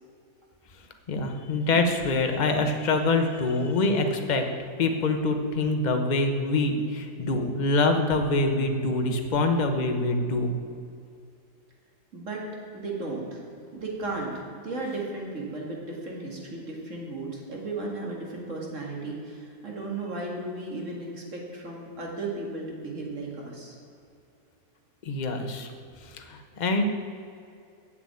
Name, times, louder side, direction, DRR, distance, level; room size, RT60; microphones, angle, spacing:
voice 1, 1.1-4.4 4.8-10.5 25.0-25.7 26.2-26.8, left 2 dB, 35° left, 5 dB, 0.8 m, -25 dB
voice 2, 12.1-12.4 12.7-13.5 13.7-23.8, right 2 dB, 50° right, -2 dB, 2.3 m, -35 dB
7.7 x 7.6 x 8.6 m, 2.5 s
omnidirectional pair, 1.7 m